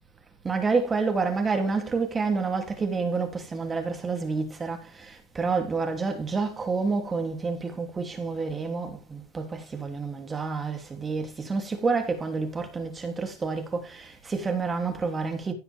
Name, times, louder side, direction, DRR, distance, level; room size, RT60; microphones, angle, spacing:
voice 1, 0.4-15.5, right 4 dB, 20° right, 2.9 m, -29 dB
16.0 x 6.1 x 3.6 m
hypercardioid pair, 95°, 0 cm